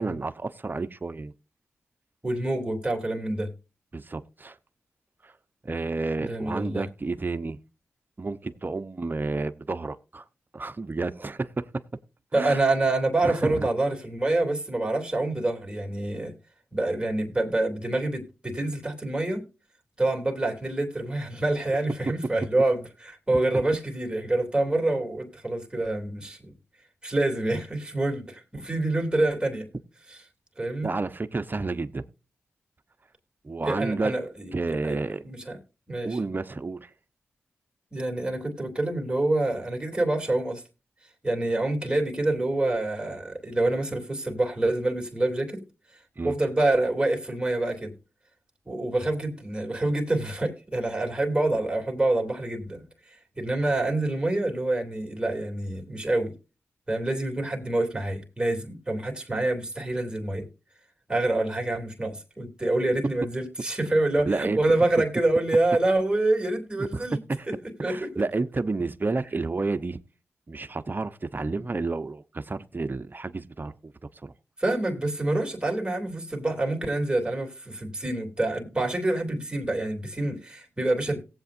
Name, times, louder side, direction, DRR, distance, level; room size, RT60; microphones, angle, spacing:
voice 1, 0.0-1.3 3.9-4.6 5.2-5.3 5.6-7.6 8.2-10.2 10.5-11.7 12.3-12.6 13.2-13.7 22.1-22.2 23.5-23.6 30.8-32.1 33.4-34.1 34.5-35.2 36.0-36.9 46.2-46.3 64.2-65.1 67.3-67.5 67.8-70.0 70.5-73.9 74.2-74.3, right 3 dB, 35° right, 0.9 m, -30 dB
voice 2, 2.2-3.5 6.2-6.9 12.3-16.3 16.7-19.5 20.0-26.5 27.0-29.7 30.6-30.9 33.6-35.0 35.2-35.6 35.9-36.2 37.9-40.6 41.2-45.6 46.2-47.9 48.6-52.8 53.4-56.3 56.9-60.5 61.1-67.2 67.5-67.6 67.8-68.1 71.6-71.7 74.6-81.2, right 2 dB, 15° right, 3.2 m, -26 dB
18.0 x 8.2 x 2.6 m
supercardioid pair, 40°, 5 cm